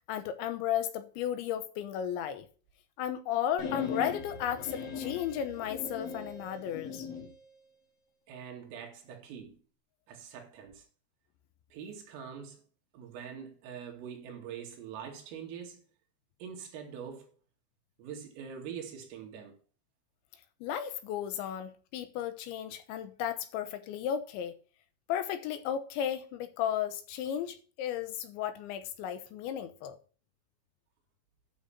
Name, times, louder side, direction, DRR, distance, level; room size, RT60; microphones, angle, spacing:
voice 1, 0.1-2.5 3.0-7.1 20.6-24.6 25.1-30.0, left 10 dB, 75° left, 3.0 m, -34 dB
sound 1, 3.6-7.3, left 5 dB, 45° left, 2.2 m, -39 dB
voice 2, 8.3-9.6 10.1-10.9 11.7-12.6 12.9-15.8 16.4-17.3 18.0-19.6, right 7 dB, 85° right, 5.0 m, -44 dB
12.5 x 7.1 x 4.3 m
omnidirectional pair, 5.8 m